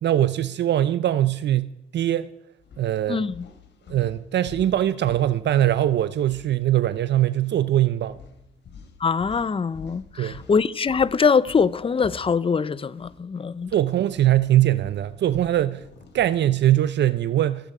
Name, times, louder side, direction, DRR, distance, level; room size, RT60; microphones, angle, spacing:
voice 1, 0.0-2.3 2.8-3.3 3.9-8.2 10.2-10.4 13.7-15.8 16.1-17.7, right 12 dB, 60° right, 0.6 m, -22 dB
sound 1, 2.0-2.2 2.6-7.1 7.3-7.6 8.1-13.2 13.5-17.0, left 6 dB, 60° left, 2.8 m, -47 dB
voice 2, 3.1-3.4 9.0-13.7, left 5 dB, 25° left, 0.7 m, -23 dB
27.0 x 9.0 x 4.9 m
cardioid pair, 90°, 20 cm